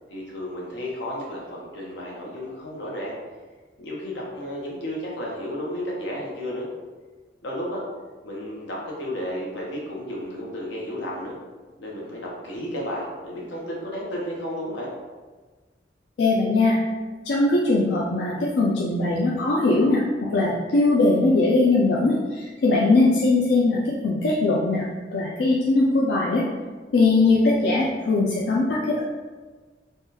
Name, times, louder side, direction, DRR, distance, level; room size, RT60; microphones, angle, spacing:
voice 1, 0.1-3.1 3.8-6.7 7.4-7.8 8.2-11.4 11.8-14.9, equal, 85° left, -3 dB, 0.8 m, -32 dB
voice 2, 16.2-16.8 17.2-20.0 20.3-26.4 26.9-29.0, left 2 dB, 65° left, -4 dB, 0.4 m, -20 dB
3.5 x 2.2 x 2.8 m, 1.3 s
head